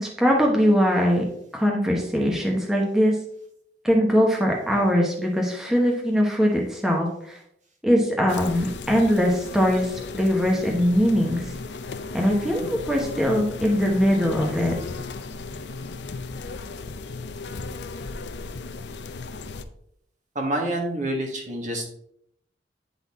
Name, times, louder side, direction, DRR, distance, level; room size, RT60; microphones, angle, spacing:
voice 1, 0.0-1.2 1.5-3.2 3.8-7.4 7.8-11.5 12.1-14.7, equal, 5° right, -1 dB, 1.0 m, -21 dB
sound 1, 8.3-19.6, left 3 dB, 70° left, 0.6 m, -35 dB
voice 2, 20.3-21.9, right 1 dB, 45° right, 2 dB, 1.6 m, -27 dB
9.8 x 4.0 x 4.1 m, 0.71 s
head